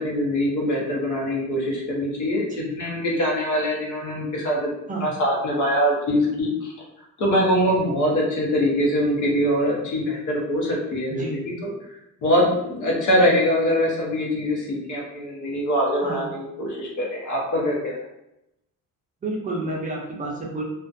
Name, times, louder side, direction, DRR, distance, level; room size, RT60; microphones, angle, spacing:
voice 1, 0.0-2.5 2.7-4.7 5.0-6.7 7.2-11.2 11.6-11.7 12.2-17.9, equal, 60° left, -2 dB, 0.8 m, -23 dB
voice 2, 11.1-11.4 16.0-16.3 19.2-20.6, right 2 dB, 25° right, -2 dB, 0.5 m, -30 dB
2.4 x 2.2 x 2.5 m, 0.85 s
cardioid pair, 165°, 33 cm